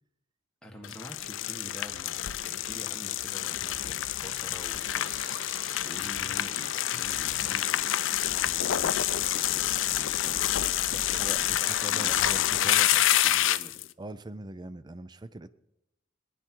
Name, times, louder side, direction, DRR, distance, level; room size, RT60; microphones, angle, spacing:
voice 1, 0.6-13.8, left 1 dB, 5° left, 0 dB, 1.5 m, -47 dB
sound 1, 0.8-13.8, left 13 dB, 70° left, 0.4 m, -28 dB
sound 2, 1.2-7.0, right 1 dB, 45° right, 1.7 m, -60 dB
sound 3, 4.8-10.1, right 4 dB, 75° right, 1.6 m, -51 dB
voice 2, 11.8-13.1 14.0-15.5, right 1 dB, 20° right, 14 dB, 0.5 m, -41 dB
20.0 x 10.0 x 4.6 m, 0.86 s
head